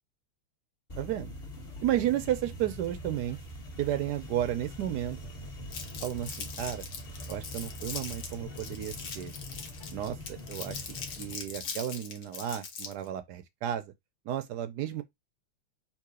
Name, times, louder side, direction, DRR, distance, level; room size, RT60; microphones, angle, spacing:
sound 1, 0.9-11.3, equal, 30° left, 1.6 m, -44 dB
voice 1, 1.0-1.3 1.8-3.4 3.8-5.2 6.0-6.8 7.3-9.3 9.9-10.2 10.5-10.8 11.2-13.8 14.3-15.0, right 12 dB, 75° right, 0.9 m, -32 dB
sound 2, 1.5-12.1, left 1 dB, 45° left, 1.1 m, -54 dB
Crumpling crinkling, 5.7-13.1, left 6 dB, 75° left, 1.9 m, -41 dB
3.8 x 2.9 x 4.8 m
omnidirectional pair, 2.3 m